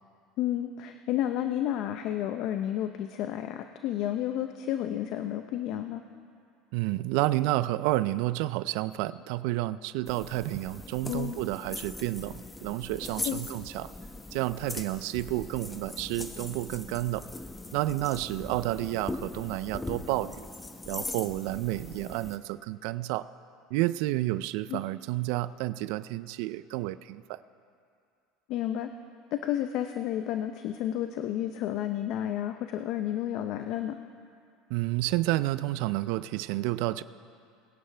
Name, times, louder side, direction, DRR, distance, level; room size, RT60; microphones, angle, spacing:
voice 1, 0.4-6.0 11.1-11.4 13.1-13.4 24.7-24.8 28.5-28.9 29.3-34.0, left 11 dB, 60° left, 8 dB, 0.6 m, -31 dB
voice 2, 6.7-13.9 14.3-17.3 17.7-20.5 20.9-23.3 23.7-27.4 34.7-37.0, right 17 dB, 70° right, 16 dB, 0.3 m, -30 dB
sound 1, 10.1-22.4, left 2 dB, 15° left, 0.9 m, -40 dB
22.5 x 10.0 x 3.3 m, 2.3 s
supercardioid pair, 110°, 0 cm